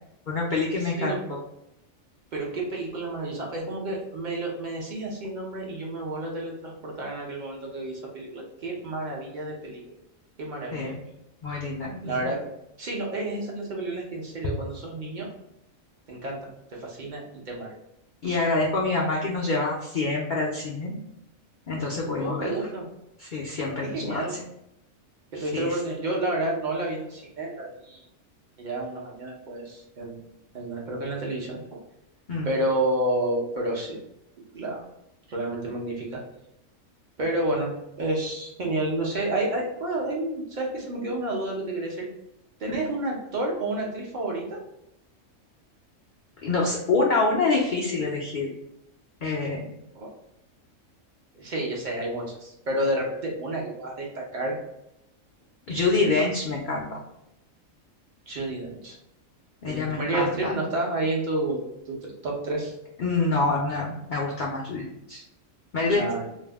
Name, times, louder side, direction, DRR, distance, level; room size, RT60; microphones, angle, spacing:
voice 1, 0.3-1.4 10.7-11.0 11.4-12.3 18.2-20.9 21.7-22.6 23.2-24.4 25.3-25.8 32.3-32.5 42.7-42.8 46.4-48.5 49.2-49.7 55.7-56.8 59.6-60.5 63.0-65.2 65.7-66.0, left 3 dB, 80° left, -3 dB, 0.4 m, -26 dB
voice 2, 0.8-1.2 2.3-9.8 10.4-11.0 12.0-12.4 12.8-15.3 16.1-16.4 16.7-17.7 22.2-22.8 23.8-24.3 25.3-28.1 28.6-30.2 30.5-31.8 32.4-34.0 34.5-34.8 35.3-36.2 37.2-37.7 38.0-42.1 42.6-44.6 50.0-50.1 51.4-54.6 58.3-59.0 59.7-62.7 65.9-66.3, right 1 dB, 55° right, -2 dB, 0.5 m, -30 dB
2.6 x 2.0 x 3.3 m, 0.83 s
omnidirectional pair, 1.4 m